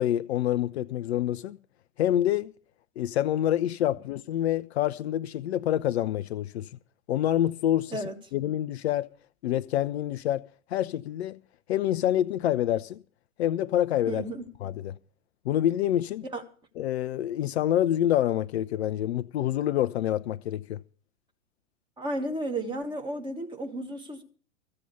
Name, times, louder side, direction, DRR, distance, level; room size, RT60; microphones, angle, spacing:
voice 1, 0.0-1.6 2.0-2.5 3.0-6.7 7.1-8.0 8.3-9.1 9.4-11.4 11.7-13.0 13.4-14.2 14.6-14.9 15.5-16.2 16.8-20.8, left 12 dB, 50° left, 0.5 m, -27 dB
voice 2, 14.1-14.4 16.2-16.4 22.0-24.2, right 1 dB, 10° right, 1.6 m, -33 dB
14.5 x 7.6 x 6.9 m
figure-of-eight pair, 105°, 42 cm